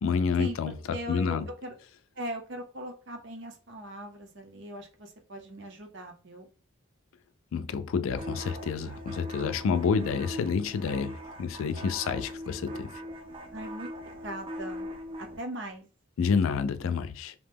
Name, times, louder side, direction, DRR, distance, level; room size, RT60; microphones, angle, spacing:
voice 1, 0.0-1.5 7.5-13.0 16.2-17.3, left 6 dB, 75° left, 0.3 m, -29 dB
voice 2, 0.9-1.7 2.2-6.5 13.5-13.9 14.2-14.9 15.2-15.9, right 1 dB, 60° right, 0.7 m, -39 dB
sound 1, 8.2-15.4, equal, 25° right, 0.3 m, -40 dB
2.8 x 2.1 x 3.3 m
head